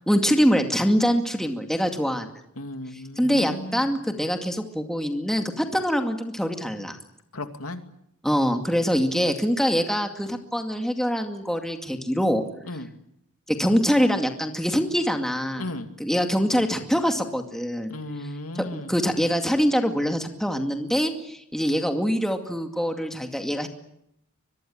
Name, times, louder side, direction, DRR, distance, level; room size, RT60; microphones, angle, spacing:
voice 1, 0.1-2.3 3.2-7.0 8.2-12.4 13.5-15.7 16.0-17.9 18.5-23.7, equal, ahead, 4 dB, 2.2 m, -24 dB
voice 2, 2.6-4.0 7.3-7.8 12.7-12.9 15.6-15.9 17.9-18.9, left 1 dB, 80° left, 7 dB, 2.5 m, -35 dB
24.0 x 23.0 x 8.7 m, 0.77 s
head